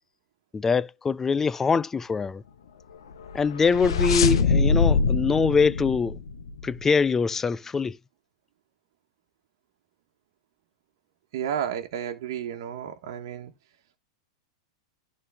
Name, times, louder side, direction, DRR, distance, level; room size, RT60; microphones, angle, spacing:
voice 1, 0.5-2.4 3.3-6.2 6.6-8.0, left 5 dB, 15° left, 0.4 m, -23 dB
sound 1, 3.2-6.9, left 4 dB, 85° left, 0.9 m, -24 dB
voice 2, 11.3-13.5, right 9 dB, 65° right, 1.3 m, -32 dB
11.5 x 3.9 x 3.4 m
hypercardioid pair, 125°, 3 cm